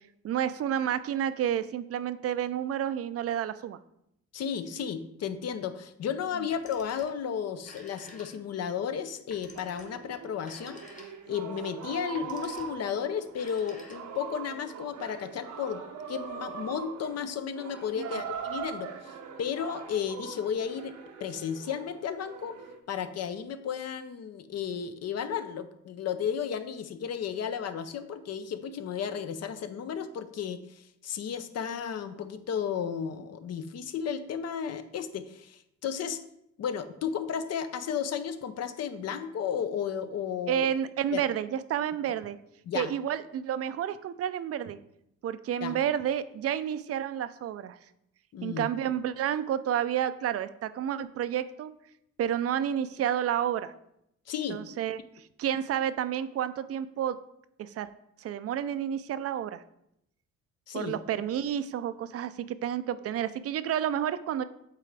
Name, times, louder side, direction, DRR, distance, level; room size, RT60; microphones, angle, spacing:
voice 1, 0.2-3.8 6.4-6.5 18.0-18.1 40.5-42.4 42.7-44.8 45.2-47.8 48.4-51.7 52.2-53.7 54.5-55.0 55.4-57.2 57.6-57.9 58.2-59.6 60.7-64.4, right 10 dB, 50° right, 13 dB, 0.4 m, -30 dB
voice 2, 4.3-10.8 11.3-15.8 16.1-22.6 22.9-36.2 36.6-40.7 41.1-41.2 42.7-42.9 45.6-45.8 48.3-48.7 54.3-54.6 60.7-60.9, left 7 dB, 55° left, 11 dB, 0.6 m, -33 dB
Telephone, 6.5-7.2 7.5-8.6 9.3-11.4 12.0-12.8 13.3-14.3, left 2 dB, 25° left, 1.2 m, -52 dB
sound 1, 9.5-22.8, right 7 dB, 75° right, 0.8 m, -42 dB
8.2 x 3.8 x 3.4 m, 0.77 s
cardioid pair, 90°, 30 cm